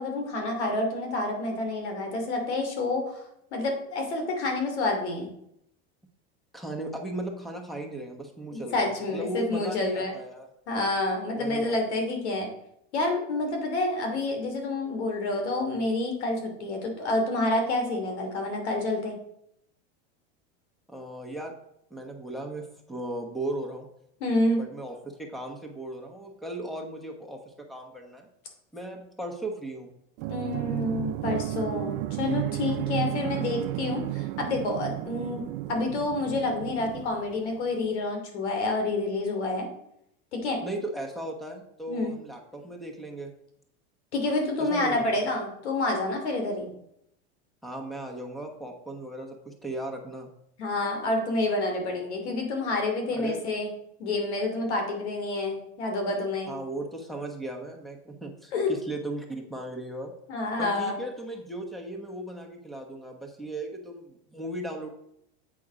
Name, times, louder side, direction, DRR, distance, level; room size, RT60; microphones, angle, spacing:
voice 1, 0.0-3.2 3.5-5.3 8.5-10.1 10.7-12.5 12.9-19.1 24.2-24.6 30.3-35.4 35.7-39.7 40.3-40.6 41.9-42.2 44.1-46.7 50.6-53.7 54.0-56.5 58.5-58.7 60.3-61.0, left 2 dB, 90° left, 3 dB, 2.8 m, -28 dB
voice 2, 6.5-10.5 11.3-11.8 20.9-21.5 21.9-23.9 24.6-28.3 28.7-29.9 33.1-33.3 40.6-43.3 44.6-44.9 47.6-50.3 53.1-53.4 56.5-60.1 60.6-64.9, right 1 dB, ahead, 3 dB, 1.1 m, -37 dB
sound 1, 30.2-37.8, right 17 dB, 50° right, 0.5 m, -33 dB
8.4 x 5.3 x 5.0 m, 0.75 s
supercardioid pair, 130°, 33 cm